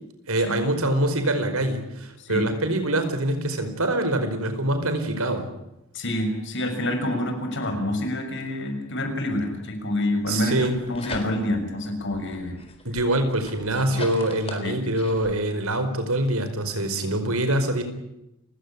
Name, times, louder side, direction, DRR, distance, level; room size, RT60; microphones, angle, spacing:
voice 1, 0.3-5.5 10.3-10.8 12.8-17.8, right 1 dB, 90° right, 9 dB, 5.0 m, -24 dB
voice 2, 5.9-10.6 10.9-12.6 13.9-14.0 14.6-14.7, left 1 dB, 60° left, 6 dB, 6.4 m, -27 dB
sound 1, 10.6-11.7 12.1-15.4, left 3 dB, 30° left, 4.1 m, -40 dB
30.0 x 17.0 x 8.8 m, 0.88 s
head